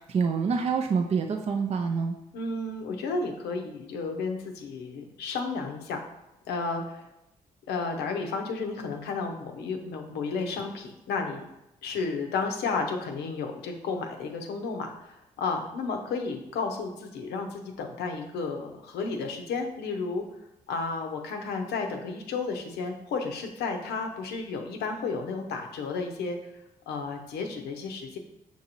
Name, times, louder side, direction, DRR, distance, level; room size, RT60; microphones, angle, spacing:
voice 1, 0.0-2.1, right 5 dB, 40° right, 4 dB, 0.4 m, -26 dB
voice 2, 2.3-6.0 6.5-7.1 7.7-11.4 11.8-20.2 20.7-26.4 26.9-28.2, left 4 dB, 75° left, 4 dB, 0.6 m, -32 dB
5.8 x 2.7 x 2.8 m, 0.93 s
hypercardioid pair, 45°, 17 cm